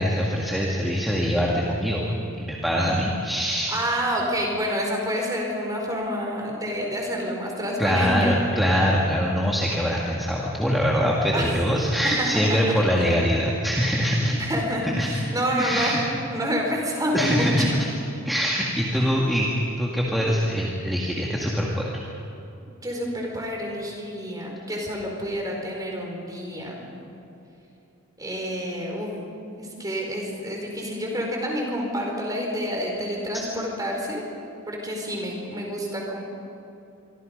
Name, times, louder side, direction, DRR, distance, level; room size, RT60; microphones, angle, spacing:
voice 1, 0.0-3.7 7.8-14.4 14.8-15.1 15.6-16.0 17.1-17.9 18.3-19.5 19.8-22.0, equal, ahead, -4 dB, 1.9 m, -23 dB
voice 2, 3.7-8.3 11.3-11.5 12.2-13.1 14.4-17.5 18.9-19.1 22.8-26.8 28.2-29.1 29.6-34.2 34.7-36.2, equal, 15° right, 0 dB, 4.7 m, -28 dB
26.5 x 24.5 x 5.3 m, 2.8 s
head